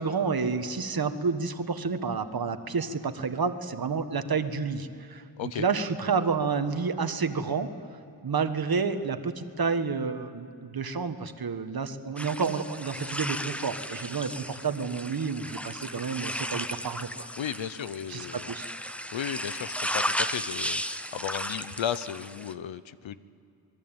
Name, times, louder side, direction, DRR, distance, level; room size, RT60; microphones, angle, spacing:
voice 1, 0.0-7.7 8.2-17.3 18.1-18.7, right 5 dB, 50° right, 9 dB, 1.5 m, -30 dB
sound 1, 12.2-22.5, equal, 5° left, 0.8 m, -35 dB
voice 2, 17.4-18.5 19.1-23.2, left 9 dB, 85° left, 14 dB, 0.9 m, -35 dB
27.0 x 20.5 x 9.0 m, 2.5 s
wide cardioid pair, 95°, 45 cm